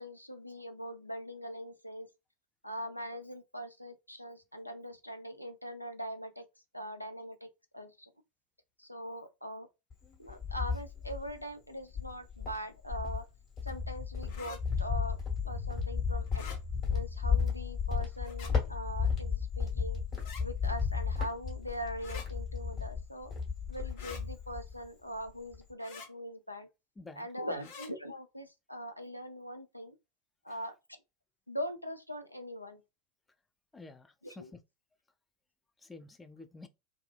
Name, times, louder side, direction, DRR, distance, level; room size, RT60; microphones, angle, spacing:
voice 1, 0.0-2.1 2.6-6.4 6.7-8.1 8.8-9.7 10.2-13.2 13.6-15.2 15.4-16.5 16.9-20.0 20.4-23.3 23.7-26.7 27.2-30.0 30.4-30.8 31.5-32.8 34.2-34.5, equal, 90° left, 0.3 m, -42 dB
Cricket, 9.9-11.4 11.9-24.9 25.2-25.7, left 6 dB, 35° left, 1.3 m, -34 dB
sound 1, 14.3-14.6 16.3-16.6 18.2-18.5 20.2-20.4 22.0-22.3 24.0-24.2 25.8-26.1 27.6-27.9, left 5 dB, 55° left, 0.7 m, -47 dB
voice 2, 27.0-27.6 30.5-30.6 33.7-34.5 35.8-36.7, left 3 dB, 15° left, 0.4 m, -50 dB
2.7 x 2.3 x 2.2 m
figure-of-eight pair, 80°, 0 cm